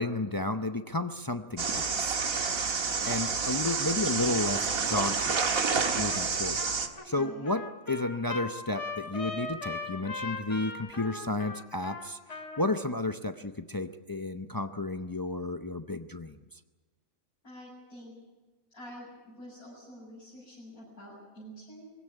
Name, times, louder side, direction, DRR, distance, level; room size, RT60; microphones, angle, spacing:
voice 1, 0.0-2.2 3.0-5.4 5.9-6.7 7.0-12.2 12.6-16.4, left 2 dB, 30° left, 8 dB, 0.4 m, -32 dB
sound 1, 1.6-6.9, right 5 dB, 70° right, 2.0 m, -29 dB
Trumpet, 6.1-6.3 6.6-12.8, left 3 dB, 55° left, 2.8 m, -39 dB
voice 2, 7.2-7.5 17.4-18.1 18.7-21.9, equal, 80° left, -7 dB, 7.6 m, -47 dB
21.5 x 16.5 x 9.9 m, 1.3 s
omnidirectional pair, 1.5 m